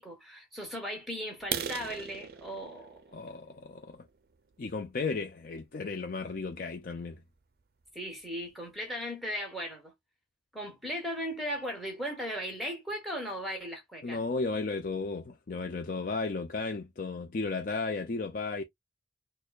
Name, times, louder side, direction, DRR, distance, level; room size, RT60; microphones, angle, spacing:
voice 1, 0.0-3.1 7.9-9.9 10.5-14.2, equal, ahead, 1.4 m, -37 dB
sound 1, 1.4-5.2 5.7-5.9 6.3-6.4 6.9-7.0 7.3-7.4 7.9-8.0 8.2-8.7, right 8 dB, 55° right, 0.5 m, -40 dB
voice 2, 3.1-4.0 4.6-7.2 14.0-18.6, left 3 dB, 50° left, 0.5 m, -34 dB
6.4 x 2.2 x 2.3 m
head